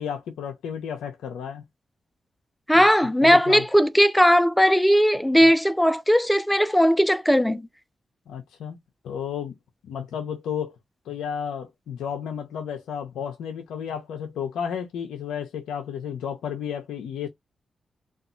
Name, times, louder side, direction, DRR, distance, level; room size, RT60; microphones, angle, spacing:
voice 1, 0.0-1.6 2.7-2.8 3.2-3.6 5.4-5.5 8.3-8.8 9.0-9.5 9.9-10.8 11.1-17.3, left 8 dB, 90° left, 0.4 m, -32 dB
voice 2, 2.7-7.6, equal, 5° left, 0.5 m, -18 dB
2.7 x 2.3 x 2.4 m
supercardioid pair, 40°, 0 cm